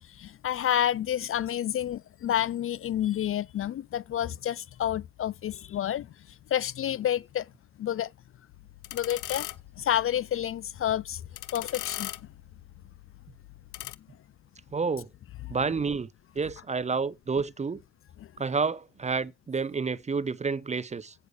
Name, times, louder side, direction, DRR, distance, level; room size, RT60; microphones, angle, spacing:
voice 1, 0.1-6.1 6.5-7.5 7.8-8.1 8.9-9.5 9.8-11.2 11.5-12.1 15.5-15.6 18.2-18.3, left 11 dB, 45° left, 0.4 m, -29 dB
sound 1, 8.5-14.0, left 16 dB, 85° left, 0.7 m, -41 dB
voice 2, 14.7-15.1 15.5-16.1 16.4-17.8 18.4-21.1, right 4 dB, 25° right, 0.6 m, -29 dB
8.1 x 6.8 x 6.3 m
cardioid pair, 90°, 30 cm